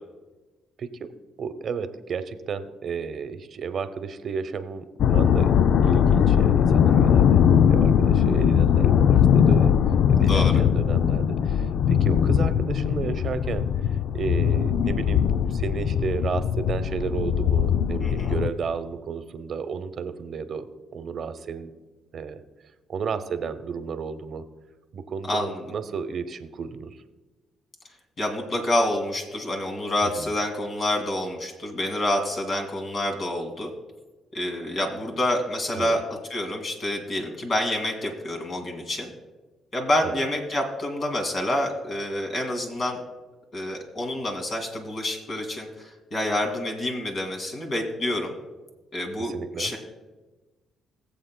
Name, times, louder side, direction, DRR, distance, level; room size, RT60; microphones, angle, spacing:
voice 1, 0.8-1.1 1.4-5.5 5.8-9.7 10.2-21.7 22.1-22.4 22.9-24.4 24.9-27.0 30.0-30.3 35.7-36.0 40.0-40.2 49.2-49.7, right 6 dB, 55° right, 11 dB, 0.8 m, -33 dB
sound 1, 5.0-18.5, left 8 dB, 70° left, 0.3 m, -20 dB
voice 2, 10.2-10.6 18.0-18.3 25.3-25.6 28.2-33.7 34.3-36.0 36.3-39.1 39.7-43.0 43.5-48.3 48.9-49.8, left 1 dB, 45° left, 3 dB, 2.2 m, -28 dB
21.5 x 7.7 x 2.2 m, 1.2 s
cardioid pair, 90°, 0 cm